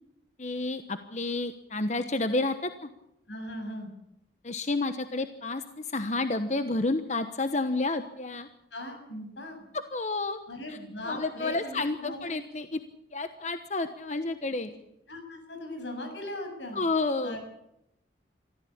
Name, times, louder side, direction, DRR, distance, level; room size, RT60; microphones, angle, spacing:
voice 1, 0.4-2.9 4.4-8.5 9.9-10.4 10.7-10.8 11.1-12.8 13.1-14.7 16.7-17.4, left 2 dB, 40° left, 9 dB, 1.1 m, -30 dB
voice 2, 3.3-3.9 8.7-9.6 10.5-12.3 15.1-16.8 17.2-17.4, left 1 dB, 85° left, 5 dB, 7.2 m, -39 dB
24.0 x 15.0 x 8.7 m, 0.83 s
head